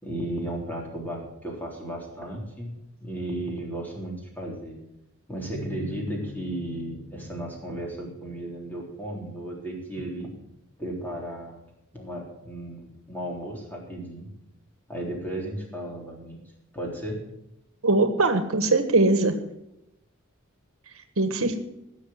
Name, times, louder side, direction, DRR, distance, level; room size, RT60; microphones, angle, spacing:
voice 1, 0.0-4.8 5.3-10.3 10.8-11.6 11.9-14.3 14.9-16.4 16.7-17.2, right 1 dB, 10° left, -1 dB, 3.7 m, -34 dB
sound 1, 5.5-9.2, left 2 dB, 90° left, 1.7 m, -43 dB
voice 2, 17.8-19.3 21.2-21.6, right 2 dB, 80° right, 9 dB, 1.4 m, -21 dB
16.0 x 6.6 x 7.8 m, 0.84 s
head